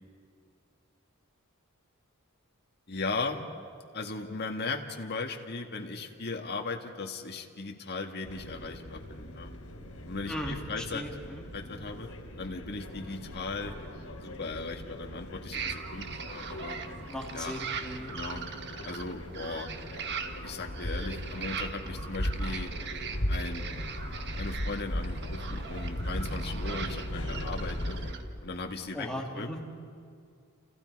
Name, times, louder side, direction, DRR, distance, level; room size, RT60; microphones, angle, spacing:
voice 1, 2.9-3.5 3.9-9.5 10.1-11.0 11.5-12.1 12.4-13.8 14.2-16.8 17.3-17.5 18.1-18.4 18.8-19.7 20.4-22.7 23.3-23.7 24.3-28.0 28.4-29.5, left 3 dB, 50° left, 2 dB, 1.8 m, -37 dB
sound 1, 8.2-28.1, equal, 85° left, 3.5 m, -38 dB
voice 2, 10.3-11.4 17.1-18.5 28.9-29.6, equal, 5° left, -1 dB, 2.4 m, -38 dB
sound 2, 15.5-28.2, right 6 dB, 50° right, 1.3 m, -41 dB
30.0 x 29.0 x 4.7 m, 2.2 s
head